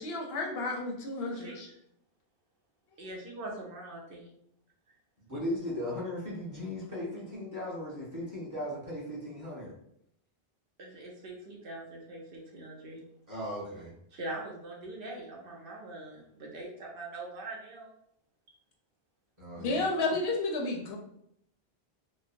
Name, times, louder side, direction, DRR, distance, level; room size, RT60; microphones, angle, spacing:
voice 1, 0.0-1.7 19.6-21.0, left 2 dB, 75° left, 1 dB, 0.8 m, -32 dB
voice 2, 3.0-4.3 10.8-13.0 14.1-17.9, right 2 dB, 65° right, -1 dB, 0.8 m, -42 dB
voice 3, 5.3-9.7 13.3-13.9 19.4-19.8, left 1 dB, 20° right, -7 dB, 1.1 m, -37 dB
3.1 x 2.0 x 2.5 m, 0.73 s
omnidirectional pair, 1.1 m